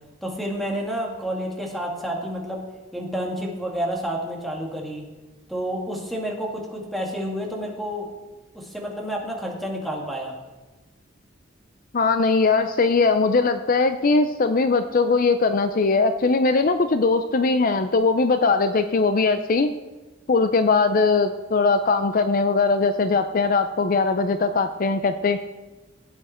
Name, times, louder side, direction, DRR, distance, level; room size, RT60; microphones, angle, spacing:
voice 1, 0.2-2.6 2.9-5.1 5.5-8.1 8.5-10.3, equal, ahead, 0 dB, 2.0 m, -29 dB
voice 2, 11.9-19.7 20.3-25.4, left 4 dB, 45° left, 9 dB, 0.5 m, -20 dB
16.0 x 8.7 x 4.4 m, 1.2 s
head